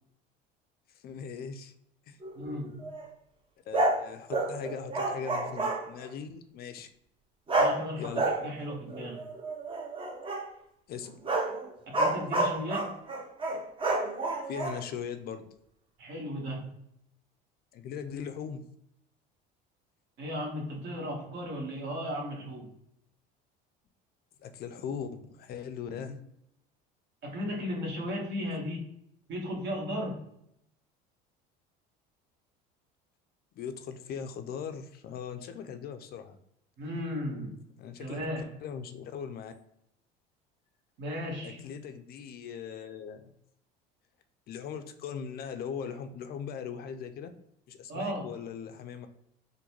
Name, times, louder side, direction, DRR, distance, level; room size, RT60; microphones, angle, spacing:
voice 1, 0.9-1.7 2.1-2.2 3.7-6.9 8.0-8.2 10.9-11.1 14.5-15.5 17.7-18.6 24.4-26.2 33.6-36.4 37.8-38.2 38.6-39.5 41.4-43.3 44.5-47.3 47.7-49.1, left 7 dB, 45° left, 8 dB, 0.4 m, -39 dB
sound 1, 2.2-3.1 3.7-6.0 7.5-7.8 8.1-10.5 11.1-14.8, right 2 dB, 25° right, 0.6 m, -30 dB
voice 2, 2.3-2.9 7.6-9.2 11.9-13.0 16.0-16.8 20.2-22.7 26.0-26.2 27.2-28.8 29.3-30.2 36.8-37.6 38.0-38.5 41.0-41.7 47.9-48.4, equal, 60° right, -1 dB, 1.3 m, -35 dB
3.8 x 2.2 x 2.9 m, 0.75 s
supercardioid pair, 90°, 21 cm